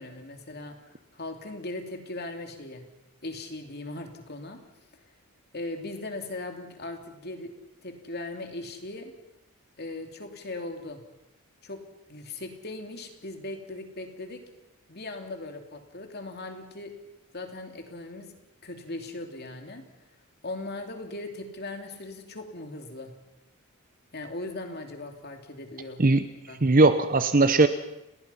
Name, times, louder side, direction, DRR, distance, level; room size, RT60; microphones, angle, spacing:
voice 1, 0.0-2.8 3.2-4.6 4.9-5.0 5.5-7.5 7.8-9.1 9.8-11.0 11.6-11.8 12.1-14.4 14.9-16.9 17.3-18.3 18.6-19.8 20.4-23.1 24.1-26.0 26.5-26.6, left 2 dB, 45° left, 5 dB, 2.8 m, -38 dB
voice 2, 26.6-27.7, right 3 dB, 40° right, 10 dB, 0.8 m, -19 dB
30.0 x 20.0 x 5.7 m, 0.91 s
head